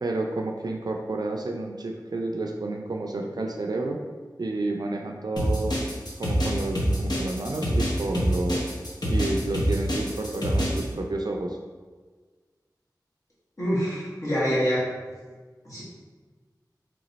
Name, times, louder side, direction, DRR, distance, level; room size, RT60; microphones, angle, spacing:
voice 1, 0.0-4.0 4.4-5.8 6.2-8.7 9.1-11.6, right 2 dB, 65° right, 2 dB, 0.4 m, -30 dB
sound 1, 5.4-10.8, equal, 65° left, 0.9 m, -25 dB
voice 2, 13.6-14.8 15.6-15.8, equal, 45° left, -9 dB, 1.5 m, -25 dB
3.3 x 3.0 x 3.9 m, 1.4 s
wide cardioid pair, 55°, 7 cm